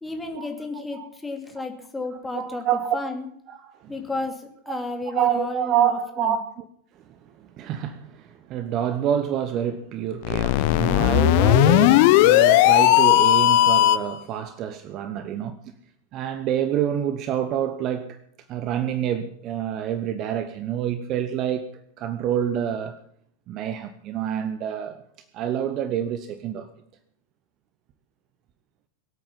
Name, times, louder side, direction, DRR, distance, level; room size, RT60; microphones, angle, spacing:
voice 1, 0.0-2.7 2.9-3.2 3.9-6.4, left 2 dB, 10° left, 4 dB, 2.7 m, -32 dB
voice 2, 0.7-1.1 2.3-3.0 3.5-3.9 4.7-4.8 5.1-6.6 7.0-15.6 16.1-18.2 18.5-21.7 22.0-23.0 23.5-25.0 25.3-26.7, right 10 dB, 35° right, 12 dB, 1.0 m, -27 dB
sound 1, 10.2-14.2, left 15 dB, 50° left, 0.8 m, -16 dB
23.5 x 8.8 x 5.9 m, 0.69 s
figure-of-eight pair, 90°, 0 cm